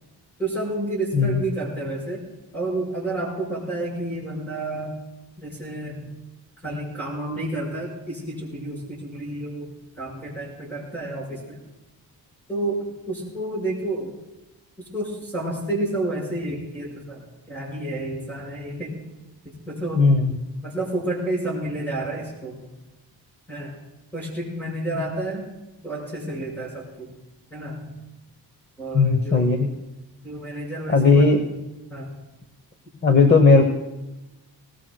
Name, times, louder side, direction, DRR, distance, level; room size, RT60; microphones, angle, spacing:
voice 1, 0.4-2.2 2.5-4.9 5.4-6.1 6.6-9.7 10.0-11.6 12.5-14.1 14.8-17.2 17.5-19.0 19.4-20.1 20.6-22.6 23.5-23.8 24.1-25.5 25.8-27.1 27.5-27.7 28.8-29.5 30.2-31.4 31.9-32.1 33.3-33.4, right 2 dB, 5° left, -2 dB, 5.7 m, -30 dB
voice 2, 19.9-20.4 24.9-25.1 28.9-29.7 30.9-31.4 33.0-33.6, left 4 dB, 25° left, 6 dB, 0.9 m, -16 dB
20.5 x 18.0 x 2.3 m, 1.0 s
wide cardioid pair, 165°, 39 cm